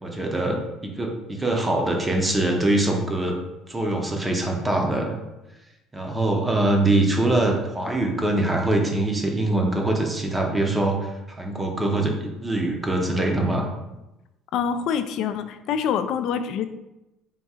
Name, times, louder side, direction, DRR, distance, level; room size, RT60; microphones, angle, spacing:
voice 1, 0.0-3.4 3.7-5.2 5.9-13.7, right 2 dB, 10° right, 1 dB, 0.6 m, -23 dB
voice 2, 14.5-16.7, left 7 dB, 60° left, 10 dB, 0.3 m, -25 dB
3.6 x 2.8 x 4.2 m, 0.96 s
cardioid pair, 145°, 0 cm